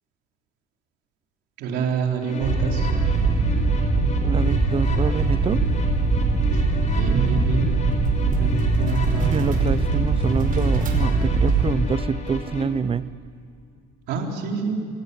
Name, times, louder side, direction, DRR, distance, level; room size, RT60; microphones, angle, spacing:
voice 1, 1.6-2.9 6.5-6.6 6.9-7.7 8.3-9.6 9.9-10.3 14.1-14.8, right 5 dB, 85° right, 1 dB, 4.0 m, -27 dB
sound 1, 2.2-12.6, left 4 dB, 45° left, 4.5 m, -35 dB
sound 2, 2.4-11.7, right 3 dB, 55° right, 5.0 m, -21 dB
voice 2, 4.2-5.6 9.2-13.1, right 6 dB, 35° right, 16 dB, 0.7 m, -26 dB
26.5 x 17.5 x 9.7 m, 2.3 s
cardioid pair, 110°, 17 cm